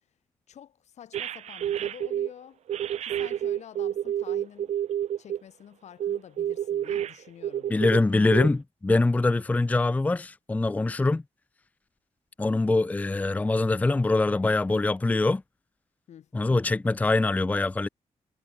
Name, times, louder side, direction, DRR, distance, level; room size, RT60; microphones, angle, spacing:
voice 1, 0.5-2.6 3.0-4.8 5.2-8.2 16.1-16.3, left 9 dB, 85° left, 6.7 m, -48 dB
sound 1, 1.1-2.3 2.7-5.4 6.0-8.0 8.3-8.5, right 10 dB, 80° right, 0.8 m, -29 dB
voice 2, 7.7-11.2 12.4-15.4 16.3-17.9, left 2 dB, 15° left, 0.6 m, -23 dB
wide cardioid pair, 165°, 11 cm